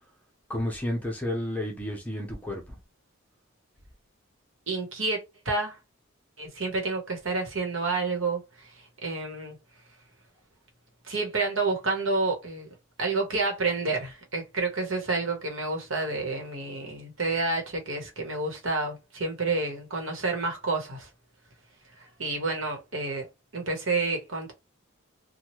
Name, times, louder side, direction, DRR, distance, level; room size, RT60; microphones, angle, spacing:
voice 1, 0.5-2.8, left 1 dB, 10° left, 0.8 m, -31 dB
voice 2, 4.7-5.8 6.4-8.7 9.0-9.6 11.1-12.7 13.0-21.1 22.0-23.3 23.5-24.5, right 3 dB, 70° right, 1.1 m, -29 dB
2.9 x 2.3 x 3.1 m
head